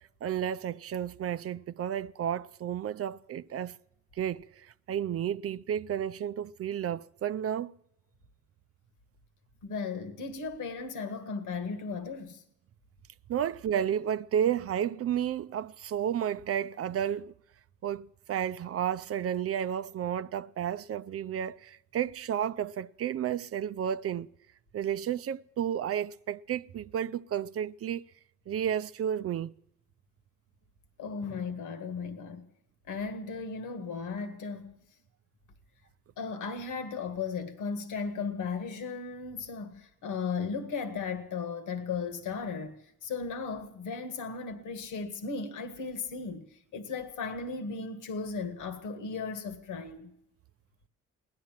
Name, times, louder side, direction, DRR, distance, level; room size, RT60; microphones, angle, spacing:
voice 1, 0.2-3.7 4.2-7.7 13.3-17.3 17.8-24.3 24.7-28.0 28.5-29.5, right 9 dB, 50° right, 0.5 m, -32 dB
voice 2, 9.6-12.4 31.0-32.5 32.9-34.8 36.2-50.1, left 5 dB, 80° left, 1.8 m, -36 dB
17.0 x 11.5 x 7.4 m
cardioid pair, 90°, 30 cm